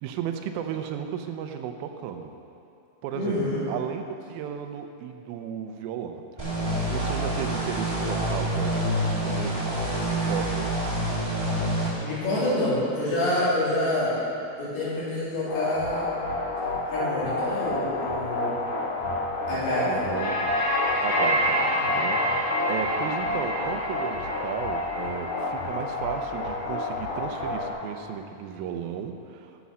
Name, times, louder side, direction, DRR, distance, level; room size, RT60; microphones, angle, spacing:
voice 1, 0.0-2.4 3.0-4.0 4.3-10.7 19.8-20.5 21.0-29.7, right 8 dB, 80° right, 6 dB, 2.4 m, -35 dB
voice 2, 3.1-3.6 12.0-14.2 14.6-16.1 16.9-18.6 19.5-20.0, left 1 dB, 75° left, -10 dB, 4.5 m, -27 dB
sound 1, 6.4-11.9, right 1 dB, 15° right, 1.1 m, -27 dB
sound 2, 15.5-27.7, left 1 dB, 55° left, 3.0 m, -28 dB
11.5 x 6.9 x 6.2 m, 2.7 s
omnidirectional pair, 4.5 m